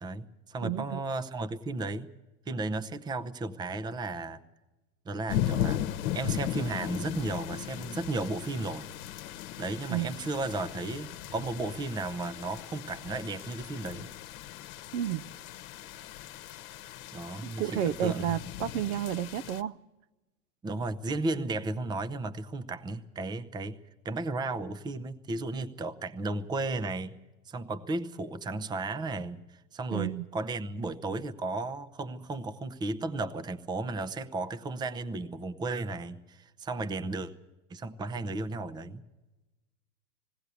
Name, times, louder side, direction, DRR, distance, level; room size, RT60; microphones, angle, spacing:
voice 1, 0.0-2.1 2.5-4.4 5.1-5.9 6.1-8.9 9.6-14.1 17.1-18.4 20.6-23.8 24.0-27.1 27.5-37.3 37.7-39.0, right 2 dB, 10° right, 0.6 m, -34 dB
voice 2, 0.6-1.0 9.9-10.1 14.9-15.3 17.4-19.8 29.9-30.3, right 11 dB, 50° right, 0.6 m, -31 dB
sound 1, 5.3-19.6, left 11 dB, 55° left, 1.2 m, -37 dB
19.5 x 17.0 x 8.3 m
hypercardioid pair, 115°, 49 cm